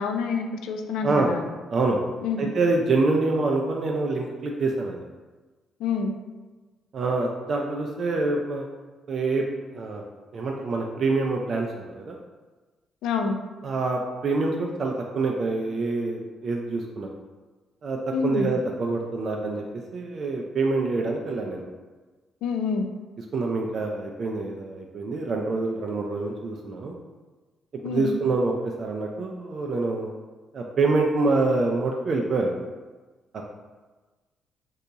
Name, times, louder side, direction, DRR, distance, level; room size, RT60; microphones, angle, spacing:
voice 1, 0.0-1.5 2.2-2.5 5.8-6.1 13.0-13.4 18.1-18.5 22.4-22.9 27.8-28.1, left 5 dB, 90° left, 5 dB, 0.3 m, -27 dB
voice 2, 1.0-1.3 1.7-2.0 2.4-5.0 6.9-8.6 9.1-9.4 9.7-10.0 10.3-11.7 11.9-12.2 13.6-17.1 17.8-18.0 18.2-19.6 19.9-21.6 23.2-26.9 27.8-28.5 28.8-30.1 30.5-32.5 33.3-33.4, right 3 dB, 55° right, 0 dB, 0.3 m, -26 dB
2.7 x 2.3 x 3.8 m, 1.3 s
cardioid pair, 90°, 0 cm